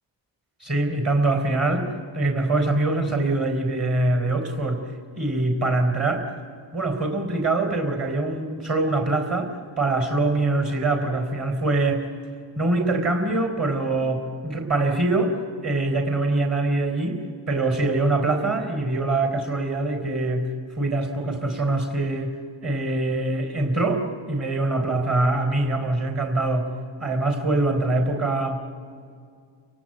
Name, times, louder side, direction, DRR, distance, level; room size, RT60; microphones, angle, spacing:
voice 1, 0.6-4.9 5.2-6.3 6.7-12.0 12.6-17.2 17.5-20.5 20.7-22.3 22.6-24.0 24.3-26.7 27.0-28.7, right 2 dB, 30° right, 3 dB, 3.8 m, -24 dB
30.0 x 17.5 x 9.0 m, 2.2 s
supercardioid pair, 65°, 49 cm